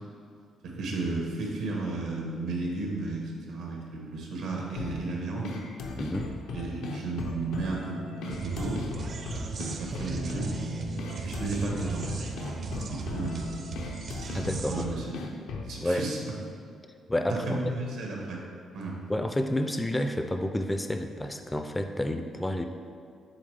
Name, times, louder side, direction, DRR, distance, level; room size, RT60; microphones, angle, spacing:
voice 1, 0.6-5.5 6.5-8.8 9.6-10.5 11.2-12.3 12.9-13.5 14.7-15.2 15.7-16.2 17.5-18.4 18.7-19.0, right 3 dB, 85° right, -1 dB, 1.1 m, -33 dB
sound 1, 4.8-15.8, left 3 dB, 85° left, 0.6 m, -38 dB
voice 2, 6.0-6.3 14.3-14.8 15.8-16.1 17.1-17.7 19.1-22.6, left 1 dB, 10° left, 6 dB, 0.3 m, -29 dB
sound 2, 8.3-14.9, right 4 dB, 55° right, 0.5 m, -36 dB
7.9 x 3.5 x 3.3 m, 2.4 s
cardioid pair, 90°, 0 cm